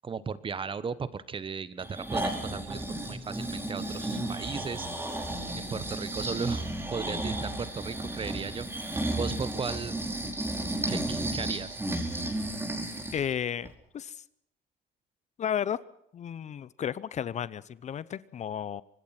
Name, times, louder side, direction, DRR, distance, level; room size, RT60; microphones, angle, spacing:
voice 1, 0.0-4.9 5.6-10.0 10.9-11.8, right 5 dB, 30° right, 16 dB, 1.3 m, -36 dB
Breathing, 1.8-13.2 13.7-13.8, right 1 dB, 15° right, 5.0 m, -33 dB
voice 2, 13.1-14.2 15.4-15.8 16.1-18.8, left 9 dB, 45° left, 19 dB, 0.7 m, -33 dB
25.5 x 20.0 x 6.0 m, 0.75 s
cardioid pair, 110°, 17 cm